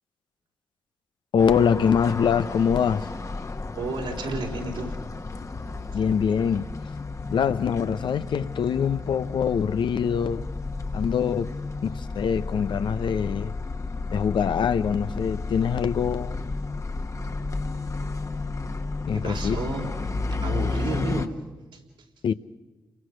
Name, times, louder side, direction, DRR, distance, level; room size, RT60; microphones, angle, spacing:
voice 1, 1.3-3.1 5.9-6.7 7.3-10.5 10.9-11.5 11.8-13.6 14.1-16.5 19.1-19.6 22.2-22.3, left 7 dB, 70° left, 0.8 m, -24 dB
sound 1, 1.4-21.3, left 3 dB, 40° left, 1.3 m, -32 dB
voice 2, 3.7-4.9 19.1-19.9 20.4-21.3 21.7-21.8, right 3 dB, 80° right, 4.0 m, -31 dB
29.0 x 23.0 x 6.4 m
supercardioid pair, 40°, 8 cm